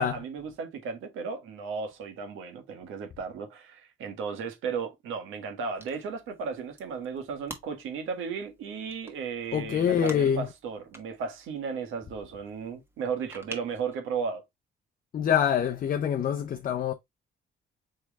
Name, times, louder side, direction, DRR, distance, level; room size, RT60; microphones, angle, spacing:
voice 1, 0.0-14.4, right 5 dB, 90° right, 1.4 m, -35 dB
sound 1, 5.7-13.9, right 1 dB, 10° right, 1.3 m, -49 dB
voice 2, 9.5-10.5 15.1-16.9, left 9 dB, 45° left, 0.5 m, -25 dB
4.5 x 3.1 x 3.4 m
cardioid pair, 90°, 20 cm